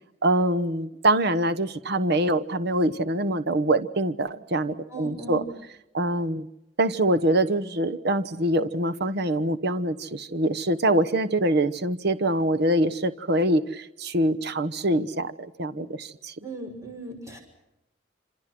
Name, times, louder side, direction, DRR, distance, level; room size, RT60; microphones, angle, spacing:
voice 1, 0.2-5.4 5.9-6.5 6.8-16.3, right 1 dB, 60° right, 14 dB, 1.1 m, -24 dB
voice 2, 4.9-5.5 16.4-17.4, right 2 dB, 15° right, 3 dB, 6.2 m, -37 dB
27.5 x 27.0 x 6.1 m, 0.87 s
head